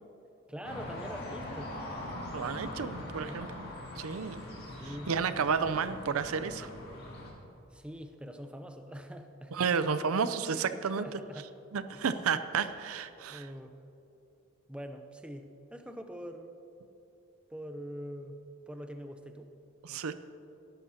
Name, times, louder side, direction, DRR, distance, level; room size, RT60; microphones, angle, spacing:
voice 1, 0.5-1.8 2.6-3.4 4.6-5.1 7.7-10.0 10.5-11.5 11.9-12.0 13.3-13.8 14.7-16.6 17.5-18.4 18.7-19.5, equal, 5° right, 6 dB, 0.5 m, -44 dB
sound 1, 0.6-7.3, left 1 dB, 45° left, 2.2 m, -42 dB
voice 2, 2.1-3.7 4.0-4.5 5.1-6.7 9.5-11.0 11.7-13.5 19.8-20.1, right 6 dB, 75° right, 12 dB, 0.5 m, -31 dB
18.5 x 11.5 x 2.8 m, 2.9 s
head